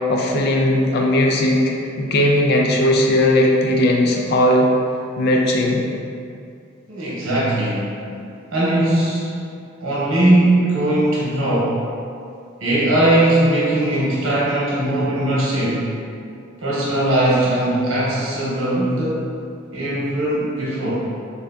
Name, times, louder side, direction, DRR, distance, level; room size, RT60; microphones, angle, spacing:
voice 1, 0.1-1.6 2.0-4.7 5.2-5.8, left 1 dB, 50° left, 0 dB, 0.4 m, -17 dB
voice 2, 6.9-7.9 8.5-9.3 9.8-11.7 12.6-15.8 16.6-19.2 19.7-20.9, right 1 dB, 85° right, -8 dB, 0.9 m, -19 dB
3.3 x 2.6 x 2.3 m, 2.5 s
head